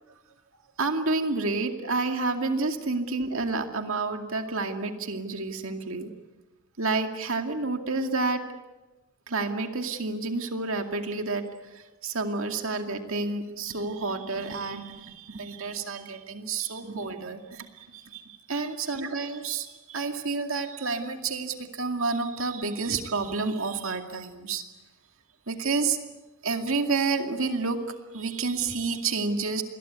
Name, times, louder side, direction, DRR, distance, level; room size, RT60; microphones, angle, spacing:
voice 1, 0.8-6.1 6.8-8.4 9.3-11.4 11.7-24.6 25.5-26.0 26.4-27.8 28.1-29.6, right 3 dB, 60° right, 5 dB, 2.3 m, -29 dB
28.5 x 21.5 x 8.3 m, 1.1 s
head